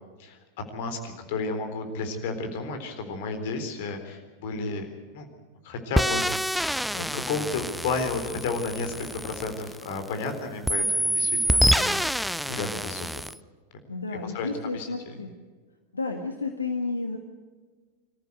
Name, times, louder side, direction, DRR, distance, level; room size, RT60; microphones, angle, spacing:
voice 1, 0.2-4.9 5.1-5.3 5.6-13.1 14.3-14.5 14.7-15.1, left 3 dB, 50° left, 6 dB, 3.8 m, -32 dB
sound 1, 6.0-10.2 10.7-13.4, equal, ahead, 0.6 m, -27 dB
voice 2, 13.9-15.3 15.9-17.2, left 3 dB, 75° left, 4 dB, 1.7 m, -31 dB
25.5 x 14.5 x 8.0 m, 1.4 s
figure-of-eight pair, 90°, 0 cm